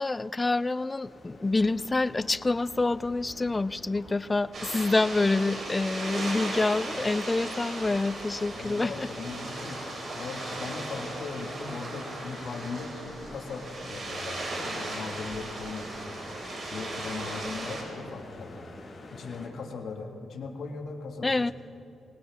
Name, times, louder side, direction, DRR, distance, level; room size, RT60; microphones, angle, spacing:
voice 1, 0.0-9.1 21.2-21.5, left 3 dB, 25° left, 17 dB, 0.4 m, -27 dB
sound 1, 1.0-19.5, left 2 dB, 50° left, 4.4 m, -48 dB
sound 2, 4.5-17.8, right 2 dB, 55° right, 4.1 m, -37 dB
voice 2, 8.5-13.0 13.3-16.2 16.7-18.6 19.1-21.5, left 4 dB, 70° left, 2 dB, 1.9 m, -39 dB
19.5 x 19.0 x 3.6 m, 2.7 s
cardioid pair, 65°, 0 cm